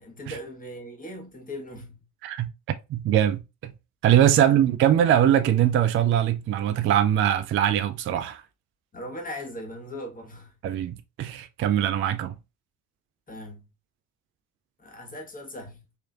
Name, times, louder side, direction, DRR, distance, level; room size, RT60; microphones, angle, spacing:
voice 1, 0.0-2.0 4.3-4.6 8.9-10.5 13.3-13.7 14.8-15.9, left 1 dB, 20° left, 1.4 m, -39 dB
voice 2, 2.9-3.7 4.0-8.4 10.6-12.4, right 10 dB, 30° right, 0.4 m, -22 dB
3.9 x 3.1 x 2.3 m
figure-of-eight pair, 50°, 44 cm